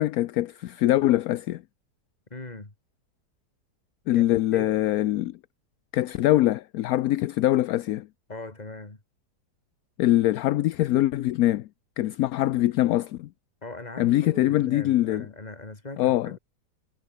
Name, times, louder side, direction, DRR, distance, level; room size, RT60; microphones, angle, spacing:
voice 1, 0.0-1.6 4.1-5.4 5.9-8.1 10.0-11.7 12.0-13.3 14.0-15.3 16.0-16.4, left 15 dB, 70° left, 1.0 m, -23 dB
voice 2, 2.3-2.7 4.1-4.7 8.3-9.0 13.6-16.4, left 2 dB, 25° left, 3.0 m, -40 dB
omnidirectional pair, 1.8 m